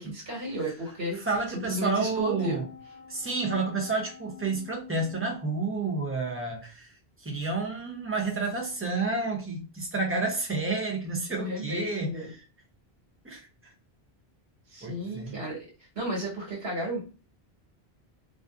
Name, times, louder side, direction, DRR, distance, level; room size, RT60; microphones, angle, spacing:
voice 1, 0.0-1.2 1.5-2.6 11.3-12.3 14.7-15.7 15.9-17.0, right 1 dB, 70° right, -2 dB, 1.4 m, -33 dB
sound 1, 0.9-6.2, left 10 dB, 85° left, 0.9 m, -48 dB
voice 2, 1.1-2.6 3.1-6.9 7.2-12.4 13.2-13.5 14.8-15.4, right 3 dB, 15° right, 0 dB, 0.5 m, -30 dB
2.5 x 2.5 x 2.3 m, 0.33 s
omnidirectional pair, 1.1 m